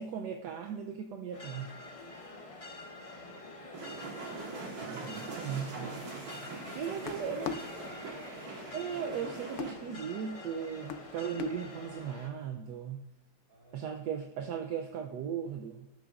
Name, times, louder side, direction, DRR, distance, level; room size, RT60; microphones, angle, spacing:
voice 1, 0.0-1.8 4.8-5.9 6.7-7.5 8.7-13.0 13.7-15.9, right 7 dB, 70° right, 3 dB, 1.2 m, -37 dB
sound 1, 1.3-12.3, left 2 dB, 30° left, 0.6 m, -47 dB
voice 2, 2.7-4.1 6.8-8.0 13.5-14.0, equal, 30° right, -1 dB, 2.8 m, -54 dB
sound 2, 3.7-9.7, right 3 dB, 55° right, 2.0 m, -43 dB
sound 3, 6.5-12.1, left 8 dB, 90° left, 0.6 m, -44 dB
13.0 x 9.0 x 2.5 m, 0.87 s
omnidirectional pair, 2.0 m